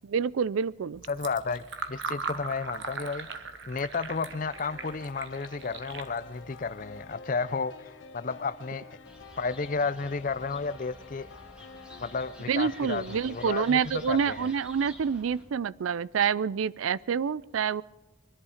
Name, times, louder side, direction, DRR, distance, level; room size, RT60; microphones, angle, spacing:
voice 1, 0.0-1.0 12.5-17.8, right 6 dB, 85° right, 0.4 m, -27 dB
Fill (with liquid), 0.9-7.1, right 4 dB, 60° right, 1.1 m, -40 dB
voice 2, 1.1-3.3 3.6-8.8 9.4-11.3 12.0-14.5, left 4 dB, 40° left, 0.5 m, -32 dB
sound 1, 4.1-13.7, left 4 dB, 70° left, 0.9 m, -49 dB
sound 2, 9.1-15.4, left 1 dB, 5° right, 2.0 m, -50 dB
23.0 x 11.0 x 5.0 m
head